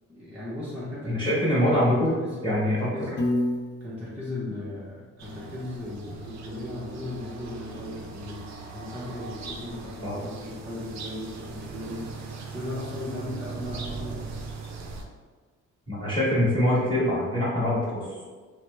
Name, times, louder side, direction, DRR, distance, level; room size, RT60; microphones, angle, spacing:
voice 1, 0.1-2.4 2.6-3.1 3.8-14.7, left 1 dB, 5° right, -9 dB, 0.7 m, -37 dB
voice 2, 1.0-2.1 2.4-2.9 10.0-10.2 15.9-18.4, left 1 dB, 15° left, -8 dB, 1.2 m, -24 dB
Piano, 3.2-5.4, left 1 dB, 40° left, 0.6 m, -31 dB
sound 1, 5.2-15.0, right 4 dB, 65° right, 0.5 m, -40 dB
2.9 x 2.1 x 3.1 m, 1.4 s
cardioid pair, 90°, 30 cm